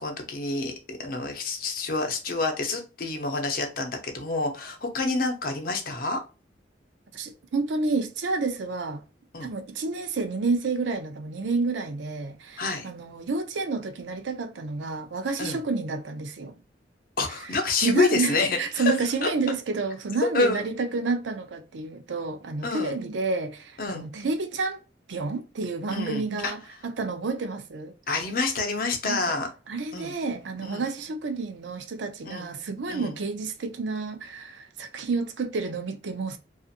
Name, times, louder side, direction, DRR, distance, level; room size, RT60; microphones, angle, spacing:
voice 1, 0.0-6.2 9.3-9.5 12.6-12.9 15.4-15.6 17.2-18.9 19.2-19.3 20.3-20.6 22.6-23.0 23.8-24.1 25.9-26.5 28.1-29.5 29.9-30.1 30.6-30.8 32.2-32.5 32.9-33.2, left 3 dB, 55° left, 0.7 m, -28 dB
voice 2, 7.1-9.0 9.4-16.6 17.8-24.8 25.1-27.9 29.0-29.4 29.7-36.4, right 3 dB, 85° right, 0.5 m, -30 dB
2.6 x 2.4 x 2.5 m
head